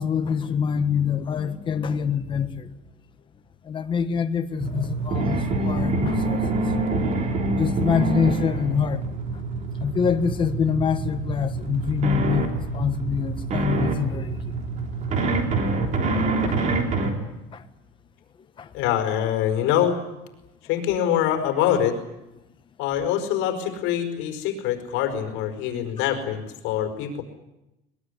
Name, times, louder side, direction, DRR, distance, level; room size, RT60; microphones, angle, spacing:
voice 1, 0.0-2.7 3.6-6.4 7.5-9.1 9.8-14.4 16.5-16.7 17.5-17.6 18.6-18.7, left 7 dB, 25° left, 1.4 m, -25 dB
sound 1, 4.6-17.1, right 2 dB, 35° right, 3.4 m, -26 dB
voice 2, 18.7-20.0 20.6-22.0 22.8-27.2, left 10 dB, 70° left, 4.9 m, -24 dB
22.0 x 21.5 x 9.9 m
cardioid pair, 170°, 20 cm